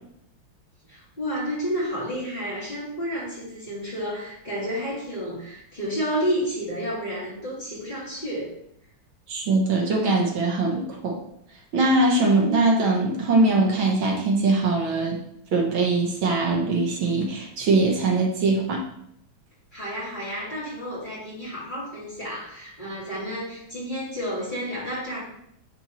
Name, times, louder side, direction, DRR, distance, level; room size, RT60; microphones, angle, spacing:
voice 1, 0.9-8.5 19.7-25.2, equal, 20° left, -8 dB, 3.0 m, -31 dB
voice 2, 9.3-11.2 11.7-15.2 15.5-18.8, right 3 dB, 75° right, 0 dB, 1.9 m, -22 dB
9.7 x 4.5 x 3.0 m, 0.73 s
omnidirectional pair, 2.2 m